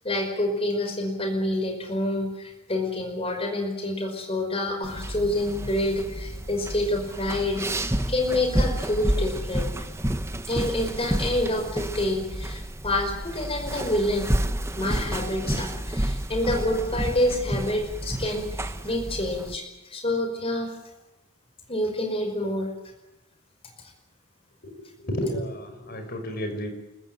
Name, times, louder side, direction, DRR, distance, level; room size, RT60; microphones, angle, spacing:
voice 1, 0.0-9.8 10.5-14.4 14.8-19.6 19.9-20.7 21.7-22.7, left 1 dB, 25° left, 4 dB, 5.1 m, -27 dB
sound 1, 4.8-19.6, right 1 dB, 15° right, 1.1 m, -30 dB
voice 2, 24.6-26.7, equal, 45° left, 5 dB, 5.4 m, -32 dB
30.0 x 14.5 x 9.3 m, 1.0 s
head